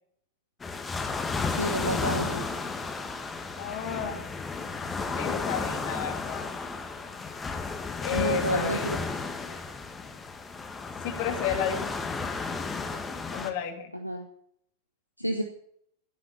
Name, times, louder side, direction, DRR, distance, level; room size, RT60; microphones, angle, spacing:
sound 1, 0.6-13.5, left 4 dB, 15° left, 1.9 m, -33 dB
voice 1, 1.6-2.5 8.1-9.0 14.0-14.2 15.2-15.4, right 1 dB, 90° right, 5 dB, 1.2 m, -29 dB
voice 2, 3.6-4.3 5.2-6.5 8.0-8.9 11.0-12.0 13.3-13.9, left 8 dB, 50° left, 4 dB, 2.2 m, -32 dB
16.5 x 8.4 x 6.7 m, 0.69 s
figure-of-eight pair, 90°, 0 cm